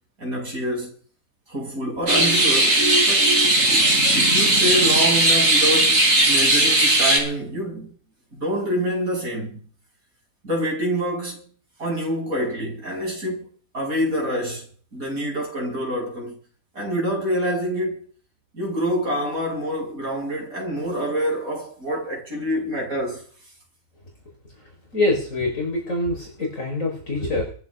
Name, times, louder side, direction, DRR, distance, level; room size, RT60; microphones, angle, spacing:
voice 1, 0.2-0.9 1.5-7.9 8.3-9.7 10.4-11.4 11.8-13.5 13.7-16.4 16.7-18.1 18.5-23.2, equal, 85° right, 7.9 m, -27 dB
sound 1, 2.1-7.2, right 1 dB, 65° right, 4.7 m, -17 dB
voice 2, 24.9-27.5, left 2 dB, 65° left, 5.0 m, -25 dB
22.5 x 14.0 x 3.7 m
omnidirectional pair, 1.5 m